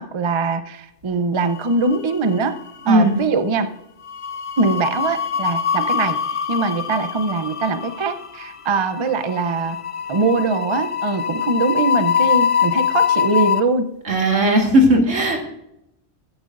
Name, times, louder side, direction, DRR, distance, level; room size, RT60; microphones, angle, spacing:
voice 1, 0.0-2.5 2.9-3.7 4.6-6.2 6.5-9.8 10.1-13.9, right 3 dB, 30° right, 9 dB, 0.6 m, -22 dB
sound 1, 1.6-2.3 2.6-2.9 4.1-13.6, left 7 dB, 55° left, 0.3 m, -23 dB
voice 2, 2.9-3.2 14.1-15.4, right 1 dB, 85° right, 2 dB, 2.2 m, -16 dB
14.5 x 9.3 x 2.6 m, 0.83 s
omnidirectional pair, 1.3 m